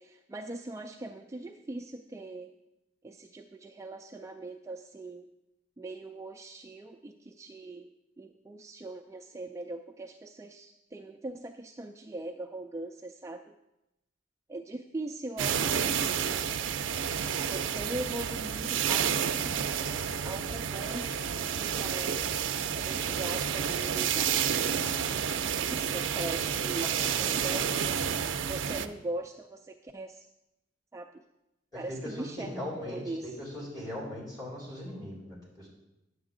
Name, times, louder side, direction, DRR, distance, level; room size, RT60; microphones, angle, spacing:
voice 1, 0.0-2.5 3.0-5.3 5.8-7.9 8.2-13.6 14.5-16.5 17.3-21.1 21.5-22.2 22.8-24.6 25.6-30.3 30.9-31.2 31.7-33.4, right 2 dB, 15° right, 4 dB, 0.3 m, -41 dB
sound 1, 15.4-28.9, right 8 dB, 75° right, 0.5 m, -30 dB
voice 2, 26.8-27.7 31.7-35.7, left 1 dB, 20° left, -6 dB, 3.8 m, -40 dB
10.0 x 8.0 x 3.8 m, 0.91 s
head